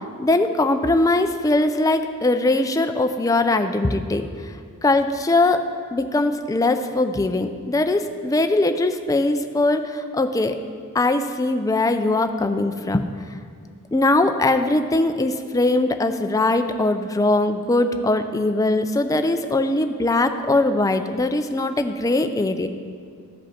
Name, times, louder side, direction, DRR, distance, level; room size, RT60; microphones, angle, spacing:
voice 1, 0.2-4.5 4.8-5.6 5.9-10.6 10.9-13.1 13.9-22.7, left 2 dB, 15° left, 8 dB, 0.3 m, -21 dB
14.0 x 5.2 x 4.3 m, 2.2 s
head